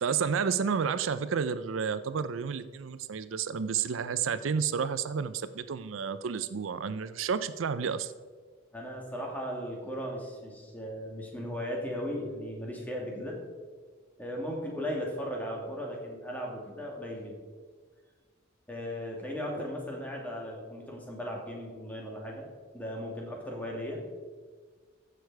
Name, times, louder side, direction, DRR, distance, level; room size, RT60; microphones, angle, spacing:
voice 1, 0.0-8.1, right 6 dB, 85° right, 14 dB, 0.5 m, -31 dB
voice 2, 8.7-13.4 14.2-17.3 18.7-22.5 22.7-24.0, equal, 10° left, -1 dB, 2.1 m, -37 dB
14.5 x 6.6 x 4.7 m, 1.5 s
head